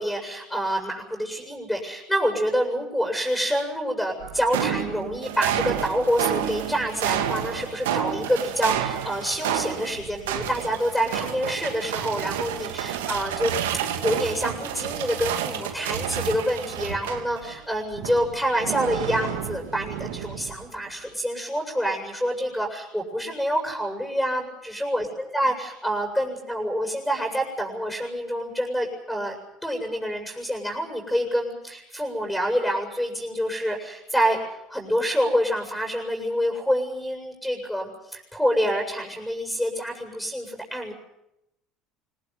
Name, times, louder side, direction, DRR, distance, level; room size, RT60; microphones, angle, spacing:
voice 1, 0.0-29.4 29.6-34.4 34.7-40.9, equal, 5° left, 3 dB, 7.2 m, -27 dB
sound 1, 4.2-17.6 17.9-20.7, right 10 dB, 90° right, 2.4 m, -30 dB
24.5 x 18.5 x 9.5 m, 0.83 s
supercardioid pair, 85°, 0 cm